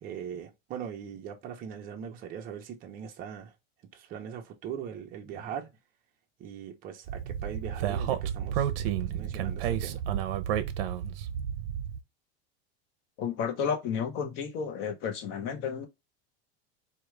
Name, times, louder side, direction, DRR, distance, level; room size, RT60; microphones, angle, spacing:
voice 1, 0.0-3.5 3.9-5.7 6.4-10.0, right 8 dB, 30° right, 0.9 m, -40 dB
Speech, 7.1-12.0, right 10 dB, 70° right, 0.7 m, -31 dB
voice 2, 13.2-15.9, left 7 dB, 40° left, 0.9 m, -32 dB
4.7 x 2.4 x 3.2 m
supercardioid pair, 170°, 30 cm